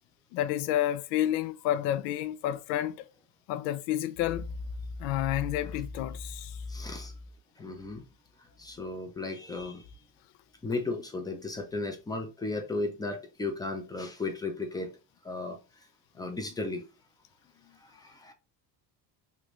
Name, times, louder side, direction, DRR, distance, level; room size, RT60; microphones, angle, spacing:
voice 1, 0.3-3.0 3.5-4.5 5.0-6.6, left 12 dB, 90° left, 0.6 m, -30 dB
voice 2, 6.7-7.1 7.6-8.0 8.4-9.9 10.6-14.9 15.2-15.6 16.1-16.8 17.8-18.3, left 3 dB, 10° left, 0.3 m, -35 dB
3.3 x 2.5 x 3.0 m
cardioid pair, 135°, 48 cm